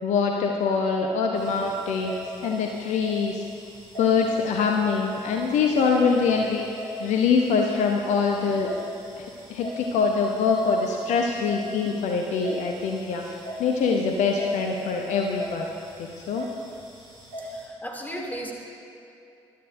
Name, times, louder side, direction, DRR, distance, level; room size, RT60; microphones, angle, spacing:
voice 1, 0.0-3.4 4.0-6.7 7.0-8.7 9.2-13.2 13.6-15.7 16.0-16.4, left 5 dB, 55° left, 2 dB, 0.9 m, -24 dB
sound 1, 1.4-17.6, equal, 80° right, 2.9 m, -40 dB
voice 2, 17.4-18.5, equal, 10° left, -1 dB, 2.6 m, -35 dB
20.5 x 12.5 x 2.6 m, 2.7 s
figure-of-eight pair, 40°, 14 cm